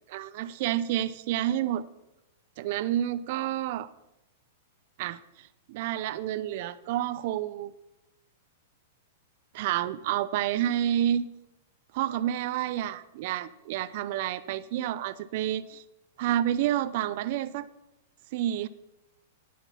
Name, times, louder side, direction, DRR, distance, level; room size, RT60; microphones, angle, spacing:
voice 1, 0.1-1.8 2.6-3.9 5.0-5.2 5.7-7.7 9.5-11.3 11.9-15.8 16.2-17.7 18.3-18.7, right 12 dB, 50° right, 14 dB, 0.5 m, -29 dB
10.0 x 9.0 x 5.7 m, 0.91 s
hypercardioid pair, 145°, 0 cm